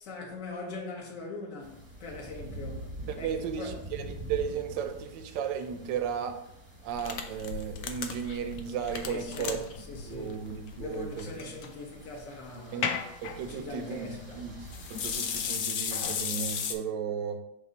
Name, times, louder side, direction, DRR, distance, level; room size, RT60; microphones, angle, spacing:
voice 1, 0.0-2.9 3.1-3.8 9.1-10.4 10.8-12.9 13.4-14.5, left 3 dB, 45° left, 1.5 m, -41 dB
sound 1, 1.6-15.6, right 1 dB, 15° right, 0.8 m, -47 dB
voice 2, 3.1-3.7 4.0-6.4 6.8-9.6 10.1-11.3 12.7-17.4, right 7 dB, 70° right, 1.2 m, -35 dB
sound 2, 6.9-16.7, left 7 dB, 80° left, 0.8 m, -36 dB
6.7 x 2.7 x 5.2 m
omnidirectional pair, 2.3 m